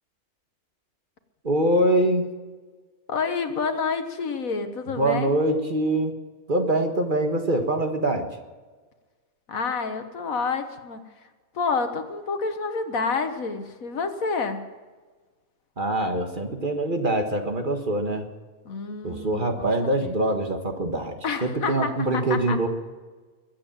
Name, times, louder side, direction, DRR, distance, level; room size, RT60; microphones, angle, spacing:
voice 1, 1.4-2.3 5.0-6.1 6.5-8.3 15.8-18.3 19.0-22.7, right 1 dB, 35° right, 4 dB, 1.7 m, -24 dB
voice 2, 3.1-5.3 9.5-11.0 11.5-14.6 18.6-20.2 21.2-22.6, left 4 dB, 70° left, 8 dB, 1.7 m, -29 dB
22.0 x 8.6 x 7.3 m, 1.4 s
omnidirectional pair, 1.5 m